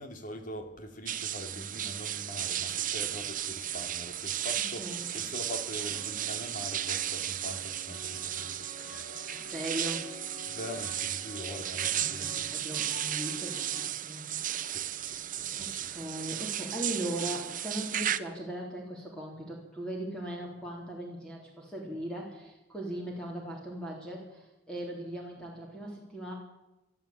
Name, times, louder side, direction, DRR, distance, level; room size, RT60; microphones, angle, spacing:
voice 1, 0.0-8.7 10.5-12.4 14.7-15.9, left 1 dB, 50° left, 6 dB, 2.8 m, -43 dB
sound 1, 1.1-18.2, right 11 dB, 50° right, 0.8 m, -34 dB
voice 2, 4.8-5.1 9.3-10.1 12.0-14.2 15.6-26.3, right 1 dB, 5° left, -2 dB, 3.6 m, -39 dB
sound 2, 5.9-13.9, left 3 dB, 70° left, 1.5 m, -50 dB
22.5 x 13.5 x 8.7 m, 0.98 s
head